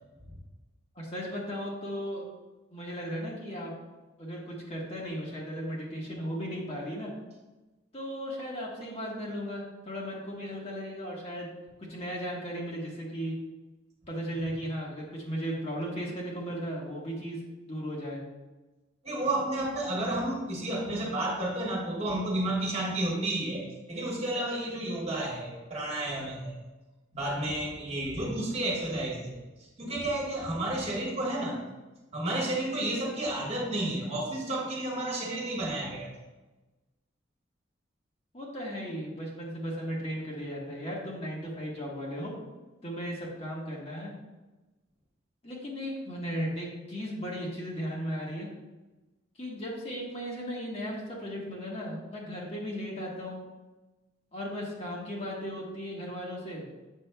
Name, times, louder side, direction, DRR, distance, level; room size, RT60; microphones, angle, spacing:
voice 1, 0.9-2.3 2.7-3.7 4.2-7.1 7.9-11.5 11.9-13.3 14.1-17.4 17.7-18.2 38.3-42.3 42.8-44.1 45.4-48.5 49.4-53.4 54.3-56.6, equal, 35° left, -3 dB, 1.2 m, -36 dB
voice 2, 19.0-26.6 27.1-29.4 29.8-31.6 32.1-36.1, right 1 dB, 35° right, -3 dB, 1.4 m, -31 dB
7.4 x 5.9 x 2.2 m, 1.1 s
head